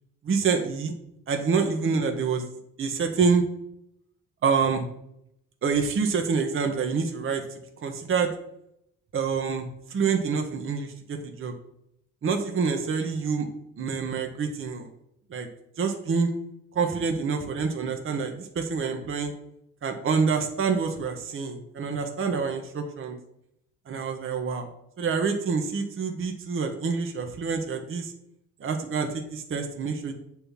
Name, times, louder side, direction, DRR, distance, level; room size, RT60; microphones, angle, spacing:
voice 1, 0.2-0.9 1.3-2.4 2.8-3.4 4.4-4.9 5.6-7.4 7.8-8.3 9.1-11.5 12.2-13.5 13.8-14.9 15.3-15.5 15.8-16.3 16.7-19.3 19.8-23.2 23.9-24.7 25.0-28.1 28.6-30.1, right 5 dB, 30° right, 4 dB, 1.0 m, -27 dB
7.2 x 3.4 x 5.9 m, 0.79 s
figure-of-eight pair, 50°, 44 cm